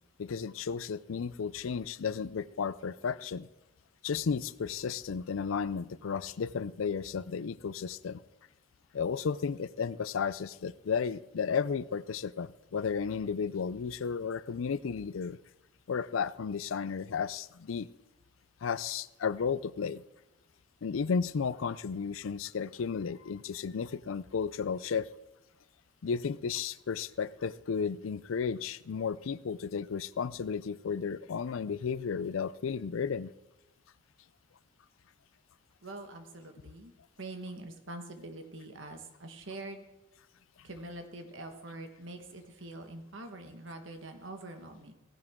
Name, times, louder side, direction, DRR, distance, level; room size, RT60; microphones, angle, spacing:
voice 1, 0.2-3.5 4.0-8.2 8.9-15.4 15.9-17.9 18.6-20.0 20.8-25.1 26.0-33.3, left 6 dB, 85° left, 18 dB, 0.4 m, -33 dB
voice 2, 35.8-36.9 37.2-39.8 40.6-44.9, right 2 dB, 70° right, 6 dB, 1.5 m, -44 dB
16.5 x 10.5 x 3.7 m, 0.99 s
head